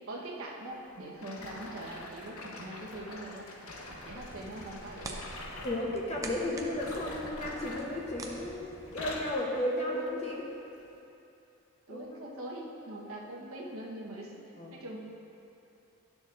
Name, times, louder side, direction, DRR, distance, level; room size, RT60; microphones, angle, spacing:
voice 1, 0.1-3.5 4.0-5.3 11.9-15.0, right 1 dB, 75° right, -3 dB, 1.1 m, -42 dB
sound 1, 1.2-5.9 6.7-8.5 8.8-9.4 10.0-10.2 10.9-11.0, left 2 dB, 85° left, 0.9 m, -44 dB
sound 2, 3.8-9.3, right 2 dB, 15° right, 0.5 m, -46 dB
voice 2, 5.6-10.5 11.9-12.0 14.6-14.8, left 1 dB, 30° left, -2 dB, 0.8 m, -34 dB
12.0 x 6.3 x 2.5 m, 2.9 s
head